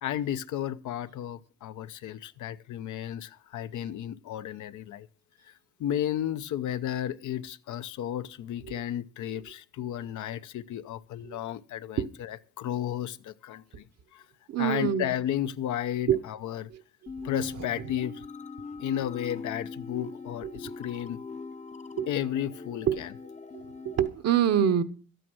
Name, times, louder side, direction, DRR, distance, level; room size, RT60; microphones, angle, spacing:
voice 1, 0.0-5.1 5.8-13.6 14.1-14.2 14.6-16.7 17.2-18.2 18.8-21.2 22.1-23.1, left 11 dB, 75° left, 0.7 m, -33 dB
voice 2, 14.5-15.1 16.1-16.2 16.7-16.8 17.2-17.3 17.8-17.9 20.4-20.5 22.0-22.1 22.9-23.0 23.5-24.8, right 9 dB, 60° right, 1.0 m, -26 dB
sound 1, 17.1-24.1, left 4 dB, 25° left, 0.6 m, -41 dB
12.5 x 9.2 x 6.1 m
cardioid pair, 90°, 30 cm